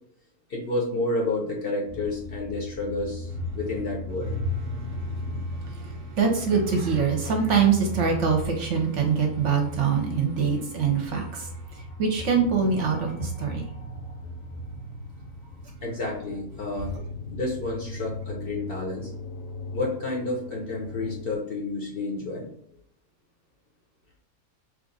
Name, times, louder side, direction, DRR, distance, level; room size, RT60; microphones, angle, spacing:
voice 1, 0.5-4.3 15.8-16.9 17.3-19.1 19.7-22.5, left 2 dB, 50° left, -2 dB, 0.8 m, -30 dB
sound 1, 1.9-21.4, left 1 dB, 70° left, 1.1 m, -38 dB
voice 2, 6.2-11.5 12.0-13.6, right 6 dB, 60° right, 2 dB, 0.9 m, -24 dB
3.1 x 2.5 x 3.8 m, 0.69 s
omnidirectional pair, 1.5 m